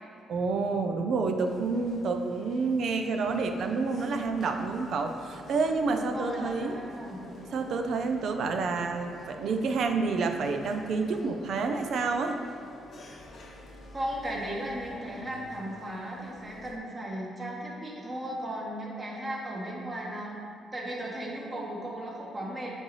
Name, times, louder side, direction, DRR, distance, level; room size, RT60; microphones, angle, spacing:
voice 1, 0.3-6.8 7.5-12.4, right 4 dB, 65° right, 5 dB, 0.5 m, -29 dB
sound 1, 1.5-16.8, left 2 dB, 60° left, 0.8 m, -50 dB
voice 2, 5.9-7.2 13.9-20.4 20.7-22.7, right 1 dB, 30° right, -4 dB, 1.5 m, -36 dB
8.6 x 3.9 x 3.2 m, 2.4 s
cardioid pair, 90°, 0 cm